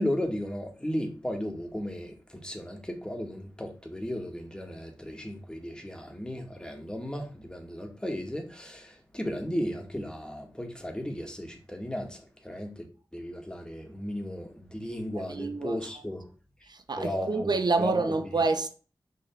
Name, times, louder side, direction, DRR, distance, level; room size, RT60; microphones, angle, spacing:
voice 1, 0.0-12.9 13.1-16.3 16.6-16.7 17.0-17.5 17.8-18.1, equal, 10° left, 2.3 m, -35 dB
voice 2, 15.1-15.8 16.7-18.7, right 3 dB, 60° right, 0.8 m, -28 dB
6.0 x 5.4 x 4.0 m
cardioid pair, 40°, 8 cm